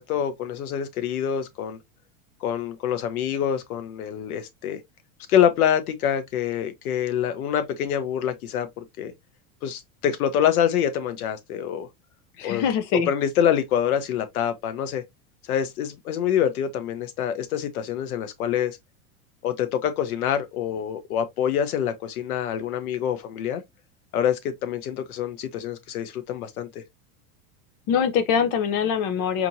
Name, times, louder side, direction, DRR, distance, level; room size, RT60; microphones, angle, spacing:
voice 1, 0.0-1.8 2.4-4.8 5.3-9.1 9.6-11.9 12.4-15.0 15.5-18.8 19.4-23.6 24.1-26.8, left 9 dB, 85° left, 1.0 m, -26 dB
voice 2, 12.4-13.1 27.9-29.5, left 7 dB, 50° left, 0.9 m, -23 dB
4.3 x 3.0 x 2.6 m
supercardioid pair, 120°, 43 cm